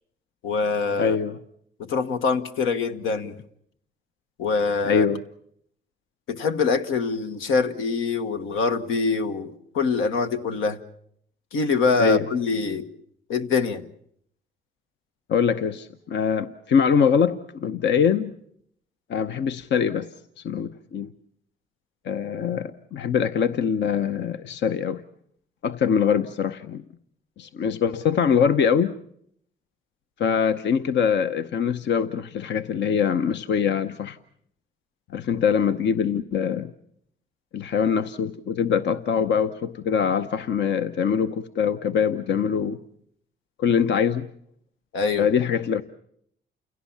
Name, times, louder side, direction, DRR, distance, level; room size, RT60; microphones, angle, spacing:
voice 1, 0.4-1.2 1.8-3.4 4.4-5.0 6.3-10.8 11.5-12.9 13.3-13.9 44.9-45.3, left 4 dB, 85° left, 8 dB, 1.4 m, -24 dB
voice 2, 1.0-1.4 4.8-5.2 12.0-12.3 15.3-18.4 19.1-20.1 20.4-21.1 22.0-25.0 25.6-26.8 27.4-28.9 30.2-34.2 35.1-36.7 37.5-42.8 43.6-44.3 45.2-45.8, left 7 dB, 65° left, 9 dB, 0.9 m, -23 dB
29.5 x 17.0 x 7.3 m, 0.70 s
cardioid pair, 90°, 20 cm